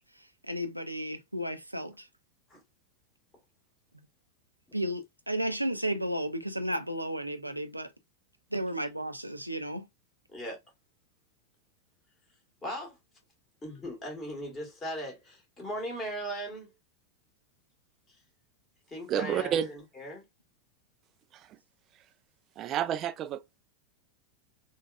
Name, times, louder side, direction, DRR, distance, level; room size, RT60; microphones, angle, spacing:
voice 1, 0.4-2.1 4.7-7.9 8.5-9.9, right 1 dB, 85° right, 0.5 m, -33 dB
voice 2, 12.6-13.0 13.6-16.7 18.9-20.2, equal, 20° left, 1.7 m, -38 dB
voice 3, 19.1-19.7 22.6-23.6, right 9 dB, 30° right, 0.4 m, -30 dB
3.9 x 2.3 x 2.4 m
figure-of-eight pair, 90°, 0 cm